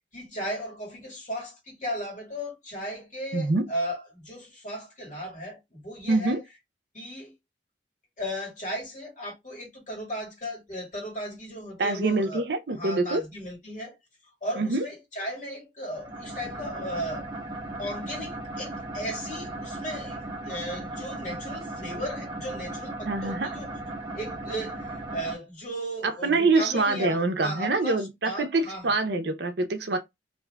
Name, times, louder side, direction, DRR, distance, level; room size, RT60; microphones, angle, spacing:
voice 1, 0.1-6.4 6.9-7.3 8.2-12.4 12.7-14.0 14.4-17.3 17.8-23.8 24.1-29.0, equal, 45° left, 1.6 m, -36 dB
voice 2, 3.3-3.7 6.1-6.4 11.8-13.2 14.6-14.8 23.1-23.5 26.0-30.0, right 3 dB, 65° right, 0.6 m, -25 dB
sound 1, 15.9-25.3, right 2 dB, 25° right, 0.9 m, -37 dB
2.6 x 2.4 x 3.2 m
head